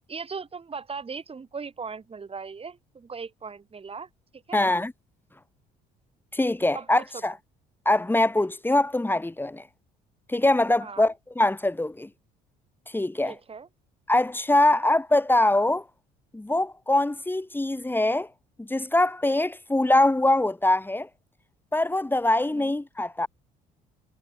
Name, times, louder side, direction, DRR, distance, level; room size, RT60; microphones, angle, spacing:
voice 1, 0.1-4.7 6.7-7.0 10.8-11.1 13.2-13.7 14.7-14.8 22.5-22.7, right 5 dB, 35° right, 7.3 m, -38 dB
voice 2, 4.5-4.9 6.3-7.4 7.8-9.7 10.3-12.1 12.9-13.3 14.1-15.8 16.3-18.3 18.6-21.1 21.7-23.3, left 2 dB, 10° left, 4.8 m, -23 dB
supercardioid pair, 70°, 17 cm